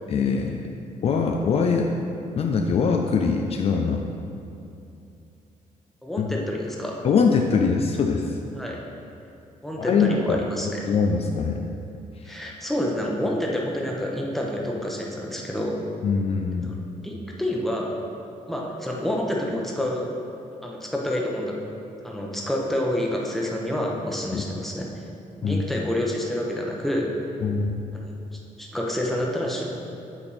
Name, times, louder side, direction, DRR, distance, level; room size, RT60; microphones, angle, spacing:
voice 1, 0.1-0.7 1.0-1.9 2.4-4.1 6.2-6.3 7.0-8.4 9.8-11.6 12.2-12.4 16.0-16.7 24.3-24.4 25.4-25.6 27.4-27.8, left 5 dB, 45° left, 3 dB, 0.4 m, -23 dB
voice 2, 6.0-7.0 8.5-8.8 9.6-10.8 12.2-15.8 16.6-16.8 17.0-18.0 18.5-20.1 20.6-21.6 22.0-24.9 25.4-27.1 27.9-28.0 28.6-29.6, left 1 dB, ahead, -2 dB, 0.9 m, -28 dB
8.5 x 3.5 x 4.2 m, 2.7 s
cardioid pair, 105°, 14 cm